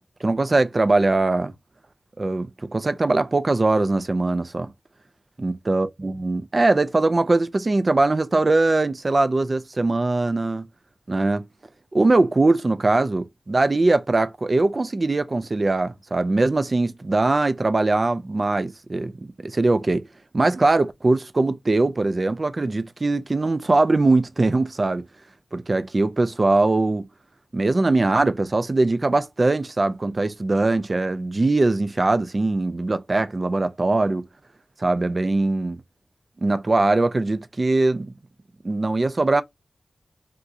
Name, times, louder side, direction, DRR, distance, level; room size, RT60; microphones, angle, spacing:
voice 1, 0.0-1.5 2.2-4.7 5.4-10.7 11.1-11.5 11.9-20.1 20.3-25.1 25.5-27.1 27.5-34.3 34.8-35.8 36.4-38.1 38.6-39.4, right 2 dB, 40° right, 0.4 m, -21 dB
3.5 x 2.8 x 2.4 m
wide cardioid pair, 65°, 0 cm